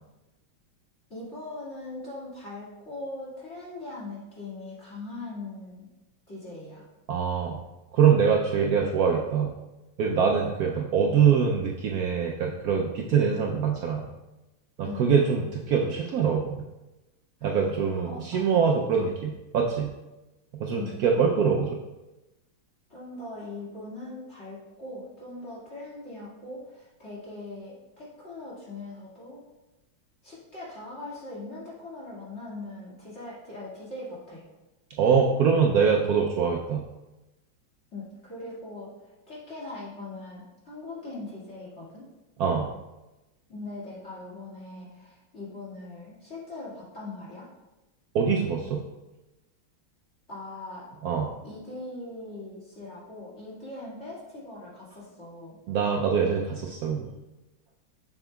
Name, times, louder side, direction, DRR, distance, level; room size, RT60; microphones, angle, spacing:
voice 1, 1.1-5.9 6.3-6.8 14.8-15.1 17.4-19.1 20.7-21.0 22.9-29.4 30.2-34.4 37.9-42.1 43.5-47.5 50.3-50.9 51.4-55.6, left 2 dB, 35° left, -7 dB, 2.2 m, -41 dB
voice 2, 7.1-7.6 7.9-9.5 10.0-14.1 14.8-16.6 17.4-19.9 20.6-21.8 35.0-36.8 42.4-42.7 48.1-48.8 51.0-51.3 55.7-57.1, right 6 dB, 90° right, 0 dB, 0.8 m, -24 dB
7.2 x 7.0 x 2.3 m, 1.0 s
omnidirectional pair, 2.2 m